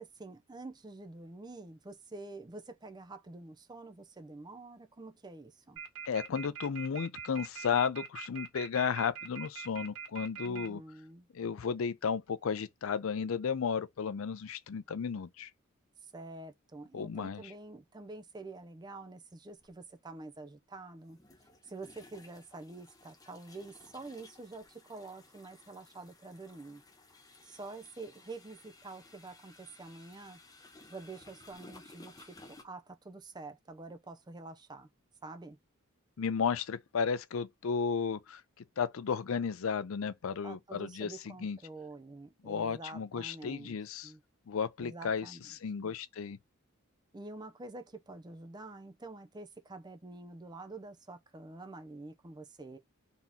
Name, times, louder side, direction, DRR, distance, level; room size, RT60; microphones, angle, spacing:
voice 1, 0.0-5.8 10.4-11.3 16.0-21.2 21.6-26.8 27.4-30.4 30.9-34.9 35.2-35.6 40.4-43.8 44.0-44.2 44.8-45.5 45.8-45.9 47.1-52.8, right 2 dB, 20° right, 0.5 m, -47 dB
sound 1, 5.8-10.7, right 7 dB, 75° right, 2.1 m, -42 dB
voice 2, 6.1-10.8 11.3-15.5 16.9-17.4 36.2-38.4 38.8-41.6 42.4-44.1 44.5-46.4, left 6 dB, 70° left, 0.4 m, -34 dB
sound 2, 19.6-19.7 21.1-32.6, left 2 dB, 15° left, 0.8 m, -57 dB
4.2 x 2.8 x 3.5 m
head